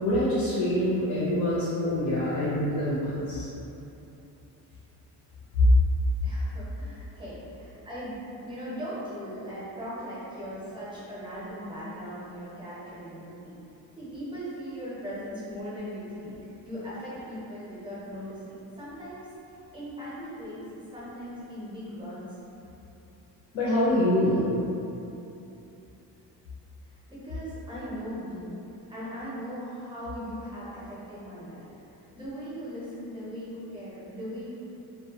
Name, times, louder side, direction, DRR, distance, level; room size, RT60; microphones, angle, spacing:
voice 1, 0.0-3.5 5.6-5.7 23.5-24.4, left 1 dB, 75° left, -9 dB, 0.6 m, -25 dB
voice 2, 6.2-13.6 14.0-16.3 16.6-20.6 20.9-22.3 27.1-28.5 28.9-31.7 32.1-34.5, equal, 15° right, -10 dB, 0.5 m, -39 dB
2.2 x 2.2 x 2.8 m, 2.9 s
cardioid pair, 170°, 37 cm